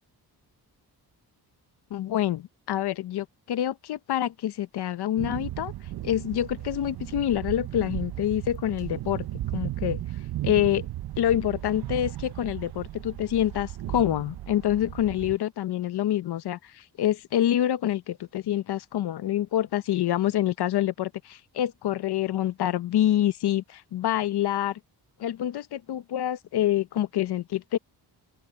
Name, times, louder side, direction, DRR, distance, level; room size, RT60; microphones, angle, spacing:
voice 1, 1.9-5.7 6.0-9.3 9.5-10.0 10.4-10.9 11.2-24.8 25.2-27.8, left 12 dB, 75° left, 0.8 m, -26 dB
sound 1, 5.2-15.4, right 14 dB, 65° right, 0.6 m, -35 dB
open air
cardioid pair, 115°, 40 cm